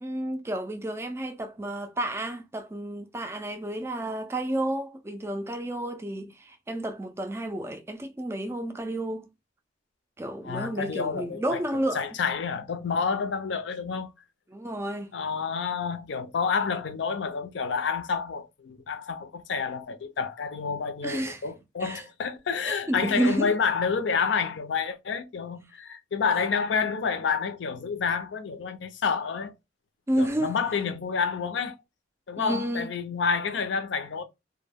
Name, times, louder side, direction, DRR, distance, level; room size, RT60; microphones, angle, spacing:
voice 1, 0.0-9.3 10.2-12.0 14.5-15.2 21.0-21.4 21.8-22.1 22.6-23.5 30.1-30.5 32.4-32.9, right 1 dB, 15° right, 0.3 m, -31 dB
voice 2, 10.4-11.6 11.9-14.1 15.1-29.5 30.2-31.7 32.3-34.2, left 5 dB, 75° left, 0.5 m, -29 dB
2.2 x 2.1 x 3.3 m
head